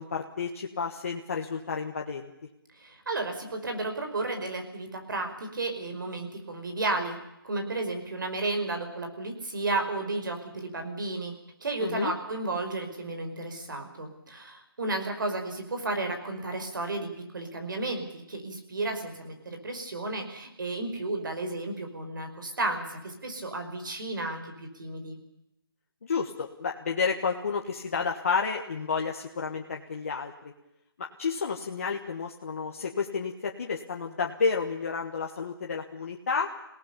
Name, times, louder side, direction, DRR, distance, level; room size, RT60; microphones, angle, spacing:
voice 1, 0.0-2.3 11.8-12.1 26.0-30.5 31.0-36.5, left 5 dB, 35° left, 1 dB, 1.5 m, -31 dB
voice 2, 2.8-7.2 7.4-11.3 11.6-25.2, right 2 dB, 55° right, 5 dB, 5.2 m, -33 dB
26.5 x 18.0 x 7.0 m, 0.86 s
hypercardioid pair, 175°, 13 cm